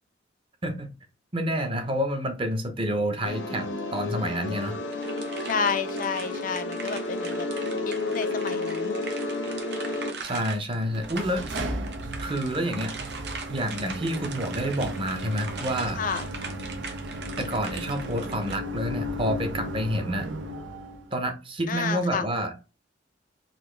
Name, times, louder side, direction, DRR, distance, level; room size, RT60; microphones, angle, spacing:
voice 1, 1.3-4.8 10.2-11.4 12.2-12.9 13.5-16.0 17.4-20.3 21.1-22.5, equal, 30° right, 0.8 m, -28 dB
sound 1, 3.2-10.1, left 2 dB, 75° left, 0.9 m, -31 dB
sound 2, 4.9-18.6, right 4 dB, 60° right, 1.0 m, -41 dB
voice 2, 5.4-7.5 7.9-9.0 16.0-16.3 21.7-22.3, left 5 dB, 45° left, 0.4 m, -30 dB
sound 3, 10.8-21.1, equal, 90° right, 0.8 m, -35 dB
4.1 x 2.7 x 3.1 m
head